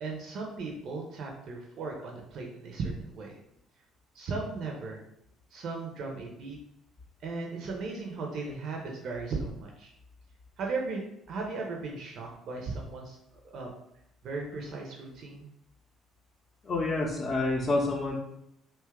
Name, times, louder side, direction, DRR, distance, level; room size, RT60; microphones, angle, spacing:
voice 1, 0.0-3.4 4.1-5.0 5.5-6.6 7.2-9.9 10.6-13.2 13.4-13.7 14.2-15.5, right 3 dB, 55° right, 0 dB, 0.5 m, -36 dB
voice 2, 16.6-18.2, left 2 dB, 40° left, -5 dB, 0.6 m, -28 dB
2.8 x 2.3 x 3.4 m, 0.79 s
figure-of-eight pair, 50°, 0 cm